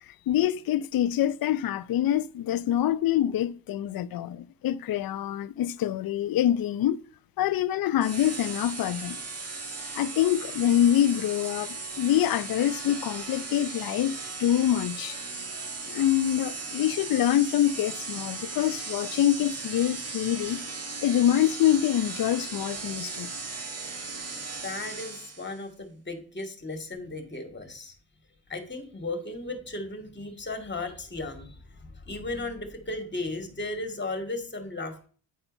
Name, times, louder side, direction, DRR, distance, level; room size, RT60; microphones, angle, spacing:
voice 1, 0.3-7.0 7.4-9.2 10.0-15.2 15.9-20.6 21.0-23.3, left 11 dB, 60° left, 0.6 m, -25 dB
sound 1, 8.0-25.6, right 3 dB, 40° right, 2.0 m, -37 dB
voice 2, 24.6-27.9 28.5-35.1, left 2 dB, 25° left, 2.3 m, -35 dB
9.5 x 4.4 x 5.3 m
cardioid pair, 85°, 39 cm